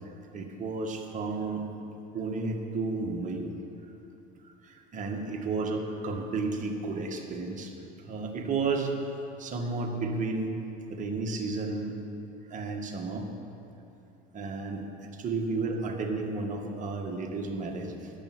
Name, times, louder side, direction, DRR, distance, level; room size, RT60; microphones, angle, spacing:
voice 1, 0.3-1.6 2.1-3.4 4.7-7.7 8.0-8.9 9.4-10.5 10.9-11.9 12.5-13.3 14.3-14.8 15.2-18.1, right 3 dB, 35° right, 2 dB, 1.9 m, -32 dB
14.5 x 10.5 x 6.2 m, 2.7 s
supercardioid pair, 100°, 21 cm